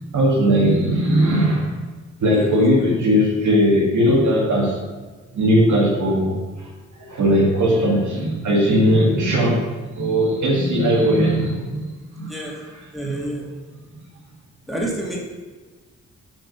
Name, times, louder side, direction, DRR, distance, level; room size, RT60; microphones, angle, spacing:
voice 1, 0.1-1.7 2.2-4.8 5.3-6.4 7.0-9.6 9.9-11.8 12.1-12.3 13.0-13.2, equal, 75° right, -2 dB, 2.2 m, -18 dB
voice 2, 2.3-2.9 9.1-9.3 12.3-12.6 12.9-13.5 14.7-15.2, right 1 dB, ahead, -3 dB, 2.4 m, -29 dB
8.8 x 5.2 x 5.6 m, 1.3 s
cardioid pair, 85°, 30 cm